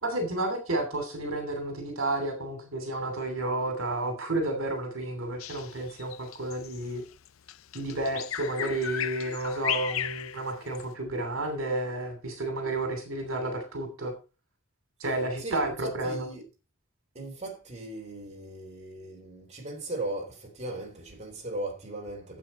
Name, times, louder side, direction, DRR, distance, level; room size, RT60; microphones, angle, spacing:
voice 1, 0.0-7.0 7.7-14.1 15.0-16.2, right 2 dB, 75° right, 2.8 m, -31 dB
Bird vocalization bird call bird song, 5.4-10.9, left 11 dB, 80° left, 0.5 m, -35 dB
voice 2, 15.4-16.4 17.2-22.4, right 2 dB, 35° right, 3.5 m, -37 dB
12.0 x 7.6 x 4.3 m
head